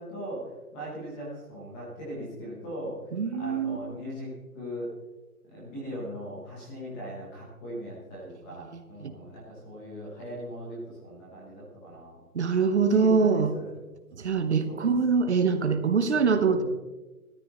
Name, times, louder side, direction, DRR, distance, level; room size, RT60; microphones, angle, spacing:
voice 1, 0.0-3.0 3.4-4.9 5.5-12.2 12.9-13.7 14.7-14.8 16.4-16.6, equal, 5° left, -5 dB, 1.0 m, -39 dB
voice 2, 3.1-3.8 8.7-9.1 12.3-13.5 14.2-16.6, right 5 dB, 50° right, 9 dB, 1.1 m, -24 dB
16.0 x 13.5 x 3.1 m, 1.2 s
hypercardioid pair, 170°, 44 cm